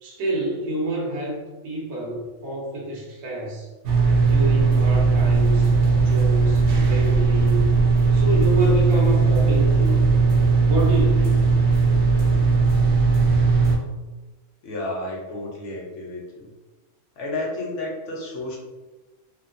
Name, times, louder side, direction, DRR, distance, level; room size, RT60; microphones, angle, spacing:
voice 1, 0.0-3.7 4.3-5.7 6.0-7.6 8.1-10.0 10.7-11.5, right 1 dB, 90° right, -4 dB, 1.2 m, -28 dB
sound 1, 3.8-13.8, right 4 dB, 65° right, 0.7 m, -18 dB
voice 2, 14.6-16.5 17.2-18.6, left 2 dB, 60° left, -2 dB, 0.9 m, -31 dB
2.9 x 2.2 x 2.5 m, 1.2 s
omnidirectional pair, 1.5 m